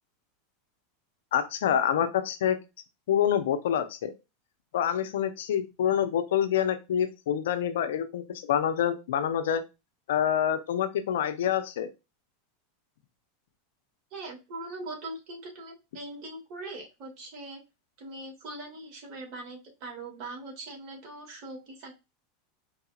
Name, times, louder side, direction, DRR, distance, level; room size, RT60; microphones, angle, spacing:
voice 1, 1.3-2.6 3.1-4.1 4.7-9.6 10.1-11.9, left 9 dB, 80° left, 10 dB, 0.6 m, -26 dB
voice 2, 14.1-17.6 18.0-21.9, right 2 dB, 50° right, -1 dB, 2.3 m, -41 dB
4.6 x 2.8 x 2.3 m, 0.26 s
hypercardioid pair, 110°, 0 cm